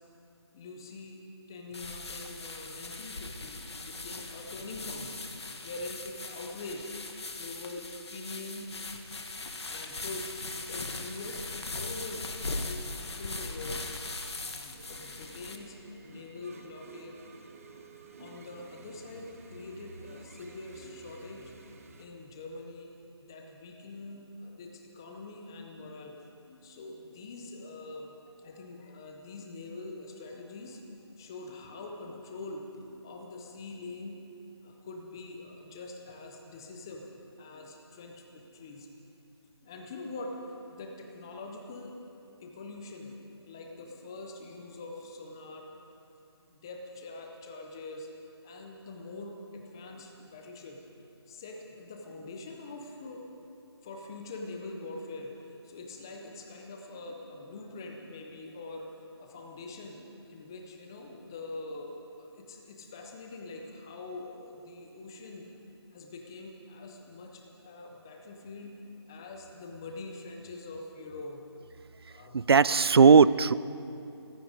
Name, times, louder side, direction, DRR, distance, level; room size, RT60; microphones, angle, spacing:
voice 1, 0.5-1.2 1.5-6.9 7.2-8.8 9.4-12.3 12.6-13.8 14.3-17.2 18.2-21.5 22.0-22.9 23.2-34.2 34.6-38.9 39.6-41.9 42.4-45.7 46.5-48.1 48.4-50.8 51.3-53.2 53.8-58.9 59.2-65.6 65.9-71.4 72.1-72.4, left 2 dB, 10° left, 2 dB, 0.6 m, -44 dB
sound 1, 1.7-15.6, left 3 dB, 70° left, 1.6 m, -40 dB
sound 2, 14.7-22.1, right 4 dB, 30° right, 1.0 m, -52 dB
voice 2, 72.3-73.5, right 5 dB, 60° right, 18 dB, 0.4 m, -18 dB
18.0 x 15.0 x 5.0 m, 2.7 s
figure-of-eight pair, 170°, 14 cm